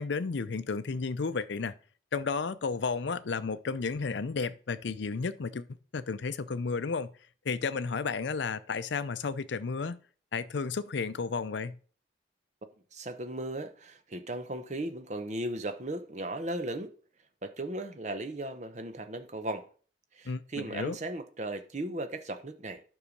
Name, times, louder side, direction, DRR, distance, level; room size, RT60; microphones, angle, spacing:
voice 1, 0.0-1.7 2.1-5.7 5.9-7.1 7.5-10.0 10.3-11.8 20.3-21.0, left 4 dB, 70° left, 0.5 m, -32 dB
voice 2, 12.9-16.9 17.4-19.7 20.1-22.8, right 1 dB, 40° right, 0.8 m, -36 dB
9.9 x 5.5 x 5.2 m
head